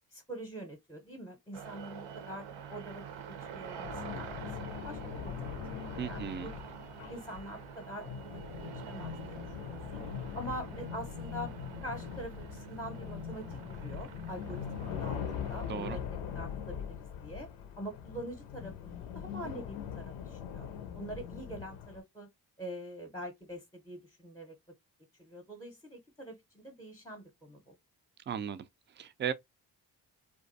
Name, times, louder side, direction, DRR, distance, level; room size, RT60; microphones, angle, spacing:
voice 1, 0.1-5.6 5.8-6.7 7.1-10.0 10.3-11.5 11.8-17.5 17.8-20.7 20.9-22.3 22.6-24.6 25.2-27.8, right 1 dB, 5° left, 0.7 m, -45 dB
sound 1, 1.5-16.0, right 8 dB, 75° right, 0.6 m, -47 dB
sound 2, 3.8-22.0, left 8 dB, 85° left, 0.6 m, -42 dB
voice 2, 6.0-6.5 15.7-16.0 28.3-28.7 29.0-29.3, right 8 dB, 25° right, 0.3 m, -36 dB
2.5 x 2.2 x 2.5 m
hypercardioid pair, 40°, 48 cm